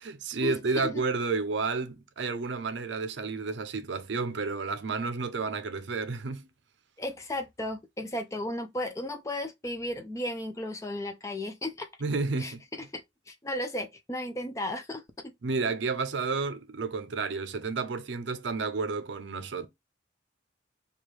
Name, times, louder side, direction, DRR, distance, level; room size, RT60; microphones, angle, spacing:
voice 1, 0.0-6.5 12.0-12.6 15.4-19.7, right 4 dB, 65° right, 0.5 m, -31 dB
voice 2, 7.0-11.9 12.4-12.5 12.9-13.0 13.3-15.3, left 1 dB, 15° left, 0.4 m, -34 dB
4.7 x 2.4 x 3.2 m
head